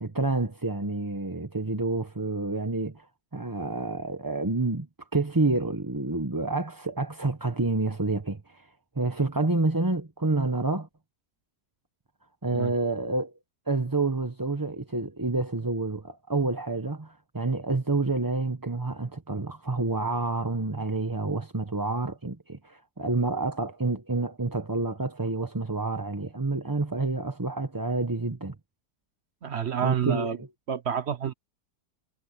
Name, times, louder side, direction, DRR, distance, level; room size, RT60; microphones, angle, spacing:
voice 1, 0.0-3.1 3.3-8.7 8.9-10.9 12.4-13.3 13.7-28.5 29.8-30.5, right 3 dB, 15° right, 0.8 m, -28 dB
voice 2, 29.4-30.4 30.7-31.3, right 8 dB, 50° right, 0.8 m, -29 dB
omnidirectional pair, 1.8 m